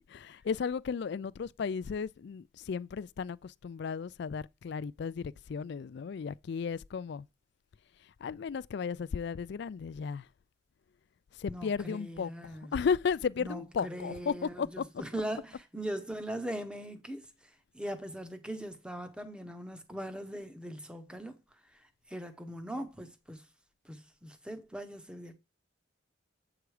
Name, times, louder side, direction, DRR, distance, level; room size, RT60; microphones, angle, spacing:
voice 1, 0.1-7.3 8.2-10.3 11.4-15.0, left 6 dB, 55° left, 0.3 m, -34 dB
voice 2, 11.5-12.7 13.4-17.3 17.7-21.4 21.7-23.4 23.8-25.4, right 1 dB, 5° right, 0.8 m, -40 dB
8.0 x 4.8 x 4.9 m
head